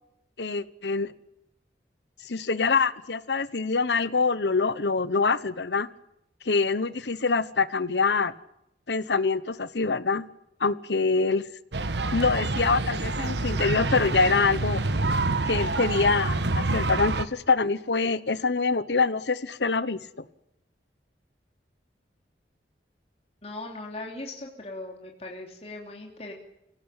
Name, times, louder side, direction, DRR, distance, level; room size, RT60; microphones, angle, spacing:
voice 1, 0.4-1.1 2.2-5.9 6.4-8.3 8.9-10.3 10.6-11.4 12.1-14.8 15.5-20.0, left 4 dB, 80° left, 16 dB, 1.1 m, -25 dB
sound 1, 11.7-17.2, right 2 dB, 80° right, 1.3 m, -27 dB
voice 2, 23.4-26.3, left 2 dB, 35° left, 0 dB, 3.2 m, -39 dB
25.0 x 17.5 x 9.0 m, 0.84 s
head